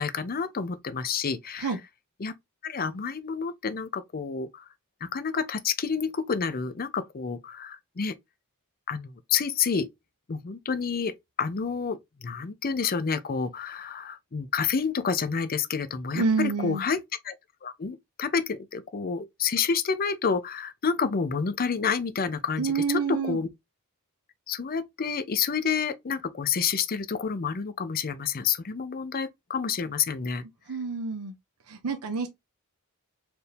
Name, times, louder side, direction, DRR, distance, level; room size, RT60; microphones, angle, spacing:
voice 1, 0.0-1.7 2.2-2.3 2.6-4.6 5.0-8.1 8.9-9.9 10.3-17.0 17.2-17.3 17.6-23.0 23.3-23.5 24.5-30.4, left 6 dB, 40° left, 0.6 m, -29 dB
voice 2, 16.1-16.8 22.6-23.4 30.7-31.3 31.7-32.3, right 5 dB, 80° right, 0.7 m, -28 dB
4.5 x 2.6 x 3.3 m
head